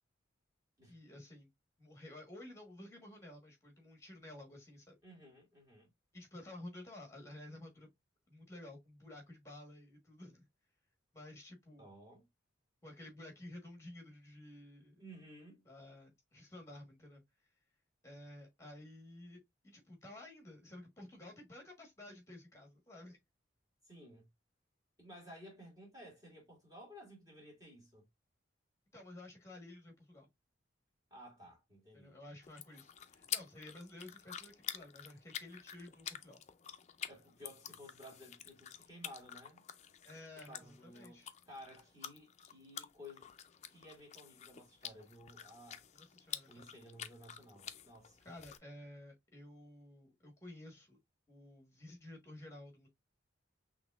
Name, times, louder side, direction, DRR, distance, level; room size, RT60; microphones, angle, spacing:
voice 1, 0.9-1.5 1.8-5.0 6.1-7.9 8.3-10.4 11.1-11.9 12.8-15.0 15.6-17.2 18.0-23.2 28.9-30.3 31.9-36.4 40.0-41.3 45.9-46.6 48.2-51.0 51.3-52.9, left 1 dB, 15° left, 1.3 m, -53 dB
voice 2, 5.0-5.9 11.8-12.3 15.0-15.6 23.8-24.3 25.0-28.1 31.1-32.2 37.1-39.6 40.5-43.3 43.7-45.8 46.5-48.2, equal, 20° right, 2.5 m, -55 dB
sound 1, 32.4-48.6, left 10 dB, 35° left, 0.4 m, -48 dB
6.0 x 3.1 x 2.4 m
head